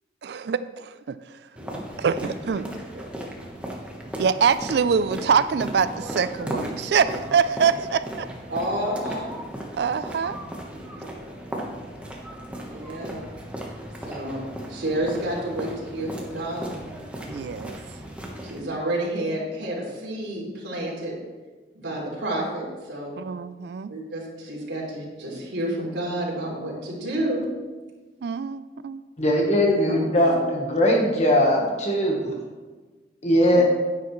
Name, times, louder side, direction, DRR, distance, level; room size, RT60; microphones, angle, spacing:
voice 1, 0.2-1.2 2.0-2.7 4.2-8.3 9.8-10.4 17.3-17.8 23.2-23.9 28.2-29.0, right 6 dB, 60° right, 14 dB, 0.3 m, -24 dB
sound 1, 1.6-18.6, right 1 dB, 5° right, 1.1 m, -36 dB
voice 2, 2.6-3.0 8.5-9.3 10.7-10.8 12.6-13.2 14.0-14.4 14.7-16.8 18.4-21.1 21.7-23.2 23.9-27.5 29.6-30.3 33.4-33.6, right 1 dB, 80° right, -4 dB, 3.3 m, -30 dB
voice 3, 29.2-32.3 33.2-33.6, left 1 dB, 35° left, 0 dB, 1.2 m, -20 dB
10.5 x 9.5 x 3.2 m, 1.3 s
head